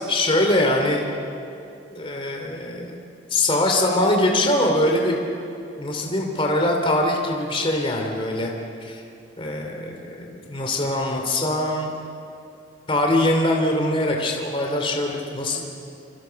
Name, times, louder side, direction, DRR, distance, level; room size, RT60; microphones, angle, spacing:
voice 1, 0.1-1.0 1.9-2.9 3.3-5.2 5.8-8.5 8.8-9.0 9.4-11.9 12.9-15.7, left 1 dB, 30° left, 2 dB, 2.8 m, -22 dB
27.5 x 26.0 x 5.8 m, 2.6 s
head